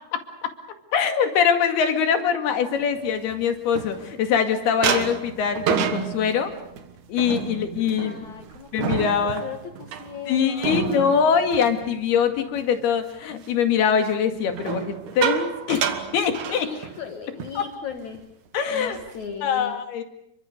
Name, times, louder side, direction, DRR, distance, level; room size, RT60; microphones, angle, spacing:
voice 1, 0.9-6.5 7.1-8.2 8.7-9.4 10.3-15.8 16.1-16.7 17.6-17.7 18.5-19.0 19.4-20.0, left 7 dB, 85° left, 6 dB, 4.2 m, -23 dB
sound 1, 3.0-4.4 4.8-12.7 13.0-13.3 14.5-17.1 17.4-17.6 17.9-18.2 18.7-19.4, right 8 dB, 60° right, 2.7 m, -30 dB
voice 2, 8.0-11.2 16.5-18.2 18.7-19.7, left 6 dB, 55° left, 5 dB, 2.6 m, -37 dB
30.0 x 23.5 x 6.6 m, 0.78 s
omnidirectional pair, 4.4 m